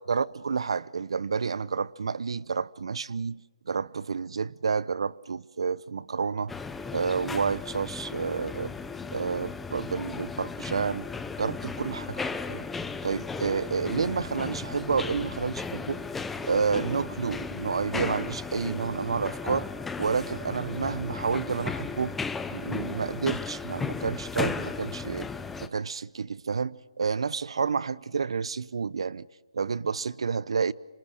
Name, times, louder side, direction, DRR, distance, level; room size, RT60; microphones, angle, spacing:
voice 1, 0.0-3.4 3.7-6.5 6.9-8.7 9.1-11.1 11.4-12.7 13.0-16.0 16.4-19.7 20.0-22.2 22.5-25.3 25.6-29.3 29.5-30.7, right 5 dB, 70° right, 0.8 m, -30 dB
sound 1, 6.5-25.7, left 4 dB, 5° left, 0.7 m, -35 dB
27.0 x 23.5 x 6.4 m
hypercardioid pair, 165°, 3 cm